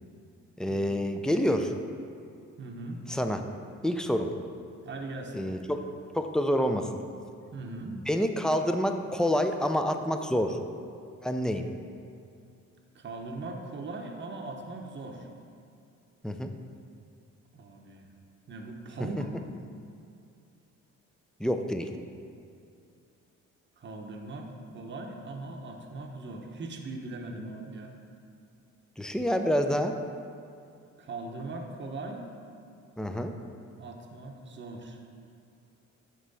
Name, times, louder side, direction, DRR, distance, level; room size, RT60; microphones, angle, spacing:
voice 1, 0.6-1.7 3.1-3.4 3.8-4.3 5.3-6.9 7.9-10.6 11.2-11.6 16.2-16.5 21.4-21.9 29.0-30.0 33.0-33.3, equal, ahead, 6 dB, 0.3 m, -28 dB
voice 2, 2.6-3.0 4.2-4.3 4.8-5.5 7.5-7.9 12.9-15.3 17.5-18.1 18.5-19.4 23.8-24.5 24.7-28.0 31.0-32.2 33.8-35.0, right 2 dB, 40° right, 2 dB, 0.8 m, -40 dB
9.1 x 3.1 x 4.0 m, 2.4 s
cardioid pair, 90°, 30 cm